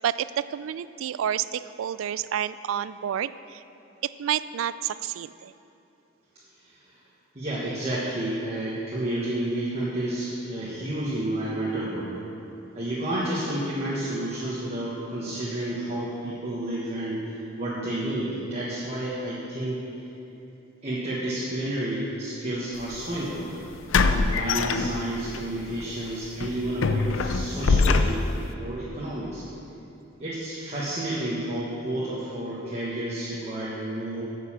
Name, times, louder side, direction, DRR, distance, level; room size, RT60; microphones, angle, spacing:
voice 1, 0.0-3.6 4.0-5.5, right 9 dB, 85° right, 16 dB, 0.3 m, -29 dB
voice 2, 7.3-12.1 12.7-19.8 20.8-23.7 24.1-28.2 28.6-29.4 30.2-34.2, right 1 dB, 30° right, -8 dB, 1.4 m, -30 dB
sound 1, 22.8-23.0 23.9-25.4 25.8-26.0 26.4-28.5, left 4 dB, 75° left, 0.5 m, -23 dB
9.5 x 6.7 x 7.3 m, 2.9 s
head